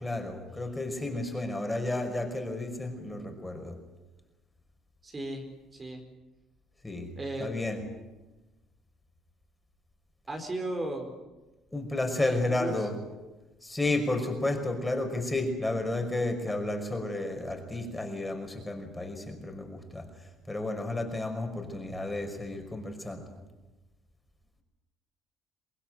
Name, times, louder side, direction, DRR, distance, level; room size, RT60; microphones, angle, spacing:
voice 1, 0.0-3.8 6.8-7.1 7.4-7.8 11.7-13.0 13.6-20.1 20.5-23.4, left 2 dB, 10° left, 4 dB, 5.6 m, -32 dB
voice 2, 5.0-5.4 5.7-6.0 7.1-7.5 10.3-11.1 12.2-12.9, right 1 dB, 25° right, 3 dB, 4.9 m, -35 dB
25.5 x 20.0 x 9.2 m, 1.1 s
cardioid pair, 95°, 0 cm